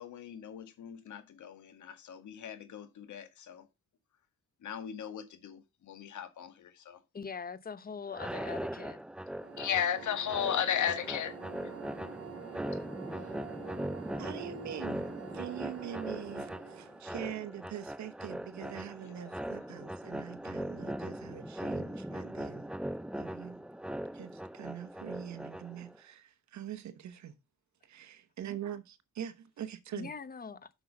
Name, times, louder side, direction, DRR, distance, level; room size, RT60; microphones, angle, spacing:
voice 1, 0.0-3.7 4.6-7.0 9.6-11.4 13.1-13.3 19.0-19.3 19.8-19.9, left 9 dB, 75° left, 1.9 m, -36 dB
voice 2, 7.1-9.0 29.9-30.7, left 5 dB, 30° left, 0.9 m, -42 dB
sound 1, 8.1-26.0, right 1 dB, 5° right, 0.4 m, -40 dB
sound 2, 9.3-17.1, right 7 dB, 55° right, 2.1 m, -48 dB
voice 3, 14.2-22.7 23.2-23.6 24.1-27.4 27.8-30.1, right 10 dB, 70° right, 1.1 m, -43 dB
7.9 x 6.2 x 5.3 m
cardioid pair, 105°, 30 cm